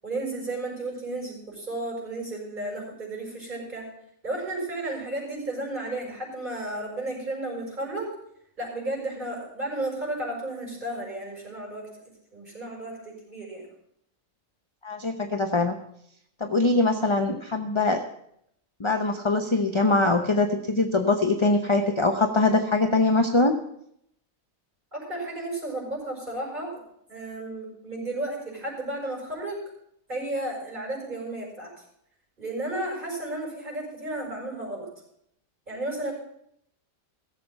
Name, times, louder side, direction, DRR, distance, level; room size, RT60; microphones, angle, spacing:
voice 1, 0.0-3.9 4.2-8.1 8.6-11.9 12.3-13.7 24.9-29.6 30.1-31.8 32.4-34.9 35.7-36.1, right 2 dB, 35° right, -2 dB, 6.7 m, -33 dB
voice 2, 14.8-15.8 16.4-18.0 18.8-23.6, left 2 dB, 25° left, 4 dB, 0.8 m, -23 dB
16.5 x 7.6 x 5.6 m, 0.72 s
omnidirectional pair, 1.4 m